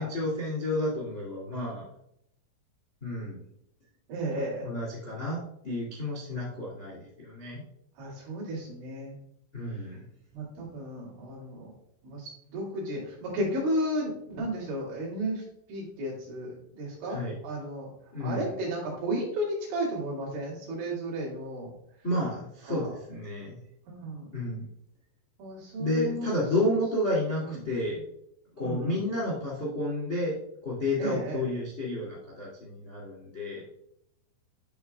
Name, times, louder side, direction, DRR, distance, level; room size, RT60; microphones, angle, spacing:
voice 1, 0.0-1.9 3.0-3.4 4.6-5.4 5.6-7.6 9.5-10.0 17.1-17.3 18.1-18.5 22.0-23.6 24.3-24.6 25.8-28.0 28.6-30.4 30.6-33.6, left 1 dB, 35° left, -6 dB, 1.1 m, -31 dB
voice 2, 4.1-4.7 8.0-9.2 9.6-9.9 10.3-11.7 12.0-21.8 22.6-22.9 23.9-24.4 25.4-26.5 27.4-27.6 28.6-29.0 31.0-31.4, right 1 dB, 70° right, -5 dB, 4.5 m, -34 dB
11.0 x 4.5 x 2.3 m, 0.75 s
omnidirectional pair, 5.6 m